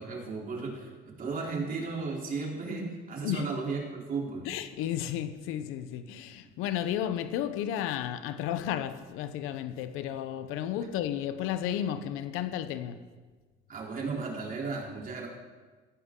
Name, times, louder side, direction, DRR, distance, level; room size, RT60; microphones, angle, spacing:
voice 1, 0.0-4.5 13.7-15.3, right 4 dB, 40° right, 3.6 m, -35 dB
voice 2, 4.4-13.0, left 10 dB, 85° left, 0.8 m, -33 dB
16.5 x 15.0 x 3.8 m
cardioid pair, 115°, 21 cm